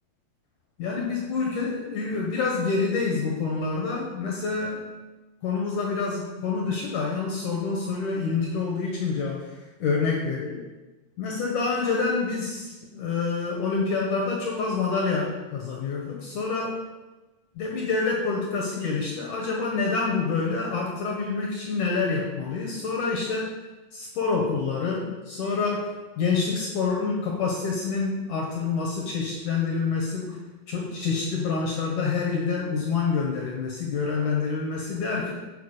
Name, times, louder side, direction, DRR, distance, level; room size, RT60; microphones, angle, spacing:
voice 1, 0.8-4.9 5.4-10.5 11.2-16.8 17.6-23.5 23.9-30.4 30.7-35.3, left 4 dB, 80° left, -1 dB, 1.7 m, -27 dB
9.1 x 4.7 x 6.5 m, 1.2 s
omnidirectional pair, 5.2 m